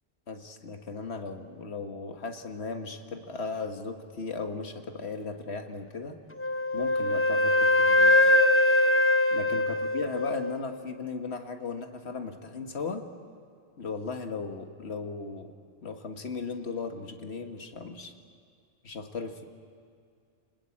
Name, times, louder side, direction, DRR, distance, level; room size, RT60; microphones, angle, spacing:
voice 1, 0.3-6.2 6.7-8.1 9.3-13.1 13.8-15.5 15.8-18.1 18.8-19.4, left 4 dB, 80° left, 5 dB, 1.8 m, -36 dB
Wind instrument woodwind instrument, 6.4-10.6, left 1 dB, 15° left, 0.6 m, -22 dB
29.0 x 20.0 x 8.5 m, 2.2 s
omnidirectional pair, 1.1 m